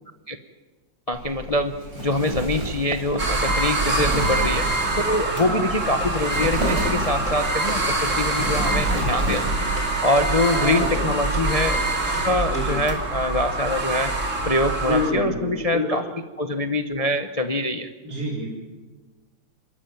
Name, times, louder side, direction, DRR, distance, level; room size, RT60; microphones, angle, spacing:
voice 1, 1.1-4.7 5.0-9.7 10.0-11.8 12.2-14.1 14.5-16.0 16.4-17.9, left 1 dB, 30° left, 7 dB, 0.6 m, -24 dB
Wind, 1.1-9.8, equal, 85° right, 5.6 m, -31 dB
sound 1, 3.2-15.1, right 2 dB, 40° right, 3.1 m, -25 dB
sound 2, 6.0-6.1 6.4-6.6 6.9-7.0 7.3-7.4 7.7-7.8 8.1-8.2 8.5-8.7 9.0-9.1 9.4-9.5 9.8-9.9 10.2-10.3 10.6-10.7 10.9-11.1 11.3-11.5 11.7-11.9 12.1-12.3 12.5-12.6, equal, 5° left, 5.3 m, -36 dB
voice 2, 10.5-11.1 12.5-12.8 14.8-16.0 18.0-18.5, left 1 dB, 60° right, -3 dB, 4.0 m, -27 dB
27.5 x 13.5 x 9.0 m, 1.3 s
omnidirectional pair, 2.0 m